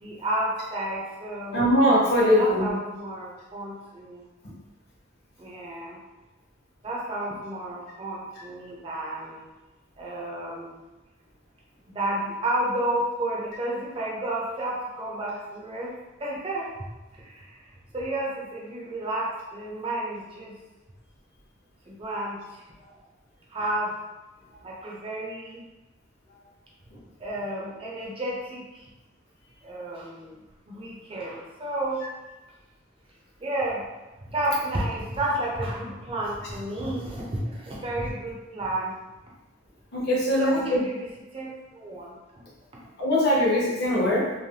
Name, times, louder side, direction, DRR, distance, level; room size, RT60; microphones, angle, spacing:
voice 1, 0.0-1.7 2.1-4.2 5.4-6.0 6.8-9.5 10.0-10.8 11.9-16.7 17.1-17.6 17.9-20.5 21.9-22.6 23.5-24.0 24.6-25.6 27.2-28.9 29.6-30.4 30.7-32.0 33.4-33.9 34.3-39.0 40.4-41.1 41.3-42.2, right 1 dB, 30° right, -4 dB, 0.5 m, -31 dB
voice 2, 1.5-2.7 39.9-40.8 43.0-44.3, left 1 dB, 55° left, -6 dB, 0.9 m, -21 dB
3.2 x 2.1 x 2.7 m, 1.1 s
head